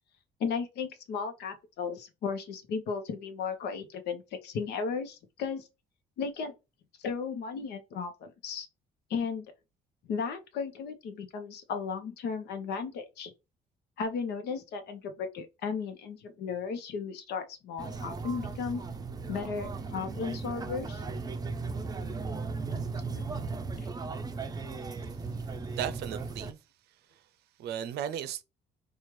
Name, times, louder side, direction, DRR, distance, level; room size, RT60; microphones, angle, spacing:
voice 1, 0.4-5.7 6.2-6.5 7.0-8.7 9.1-9.5 10.1-13.3 14.0-18.8 19.3-21.0 22.1-22.2 23.1-23.2, left 5 dB, 75° left, 1.0 m, -35 dB
sound 1, 17.8-26.5, right 4 dB, 25° right, 0.5 m, -36 dB
voice 2, 25.7-26.6 27.6-28.4, right 10 dB, 75° right, 0.6 m, -35 dB
4.4 x 2.4 x 3.1 m
cardioid pair, 110°, 17 cm